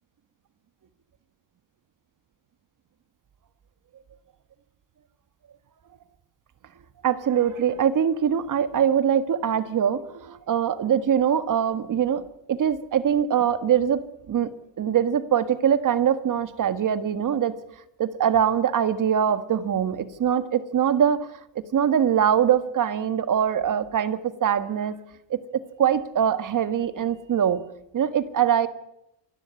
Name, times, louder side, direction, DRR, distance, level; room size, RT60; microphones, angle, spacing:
voice 1, 7.0-12.2 12.5-14.5 14.8-17.6 18.0-21.3 21.7-25.0 25.3-27.6 27.9-28.7, right 8 dB, 40° right, 13 dB, 1.7 m, -23 dB
27.0 x 12.5 x 9.6 m, 0.84 s
cardioid pair, 115°, 49 cm